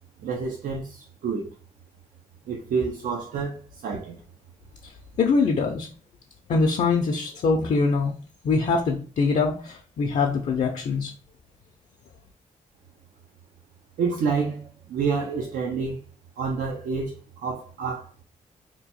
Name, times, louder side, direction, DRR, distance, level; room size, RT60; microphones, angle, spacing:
voice 1, 0.2-1.5 2.5-4.2 14.0-16.0 16.4-18.2, right 5 dB, 80° right, 0.5 m, -28 dB
voice 2, 5.2-5.9 6.5-8.1 8.4-11.1, left 4 dB, 60° left, 0.5 m, -23 dB
2.8 x 2.2 x 4.1 m
cardioid pair, 100°, 14 cm